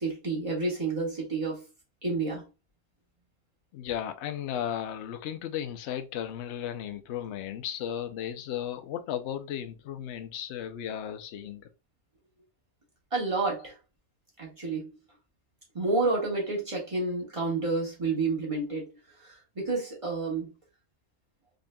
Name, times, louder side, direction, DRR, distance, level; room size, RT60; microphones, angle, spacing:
voice 1, 0.0-1.6 2.0-2.4 13.1-13.7 14.4-14.9 15.7-18.9 19.5-20.5, right 3 dB, 25° right, 1.6 m, -29 dB
voice 2, 3.7-11.7, left 10 dB, 65° left, 0.8 m, -35 dB
3.8 x 3.5 x 2.2 m
omnidirectional pair, 1.5 m